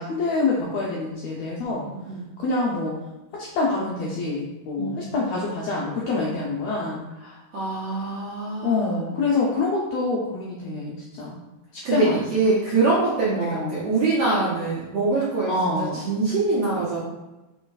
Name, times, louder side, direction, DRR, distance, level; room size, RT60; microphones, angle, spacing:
voice 1, 0.0-1.9 2.4-3.0 3.3-7.0 8.6-11.4 11.7-12.2 13.3-13.8 15.5-16.1, left 3 dB, 85° left, -3 dB, 1.5 m, -26 dB
voice 2, 1.9-2.2 4.8-5.2 7.2-9.0 11.8-15.5 15.8-17.0, right 3 dB, 70° right, -7 dB, 1.5 m, -24 dB
5.4 x 4.0 x 2.3 m, 1.1 s
omnidirectional pair, 3.7 m